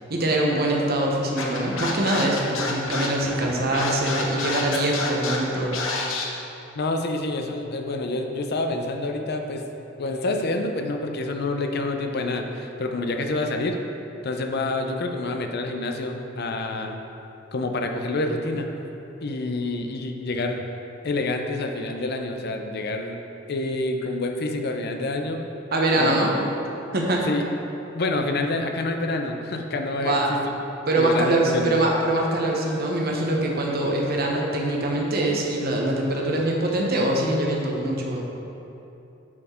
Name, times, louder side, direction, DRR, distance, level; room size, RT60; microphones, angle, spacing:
voice 1, 0.1-5.8 25.7-26.4 26.9-27.3 30.0-30.3 30.9-38.2, right 1 dB, 50° right, -1 dB, 1.0 m, -23 dB
Scratching (performance technique), 1.4-6.2, left 3 dB, 80° left, 0.9 m, -29 dB
voice 2, 6.7-9.6 10.0-13.8 14.2-17.0 17.5-18.8 19.2-20.7 21.0-23.2 23.5-25.4 26.0-26.1 27.3-27.4 27.9-30.4 31.0-31.7, left 2 dB, 55° left, 4 dB, 0.6 m, -27 dB
8.5 x 4.3 x 4.4 m, 2.9 s
head